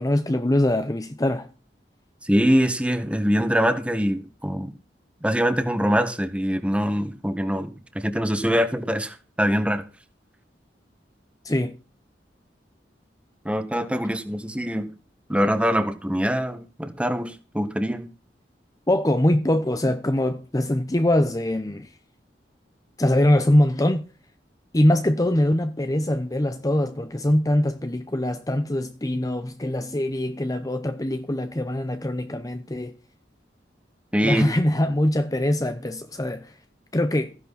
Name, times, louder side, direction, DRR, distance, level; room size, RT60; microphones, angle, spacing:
voice 1, 0.0-1.5 11.4-11.8 18.9-21.9 23.0-24.1 24.7-32.9 34.2-36.5 36.9-37.4, left 1 dB, 20° left, 0.8 m, -23 dB
voice 2, 2.2-4.7 5.2-9.8 13.4-14.9 15.3-18.1 34.1-34.4, equal, 5° right, 1.7 m, -23 dB
15.0 x 11.0 x 4.2 m
head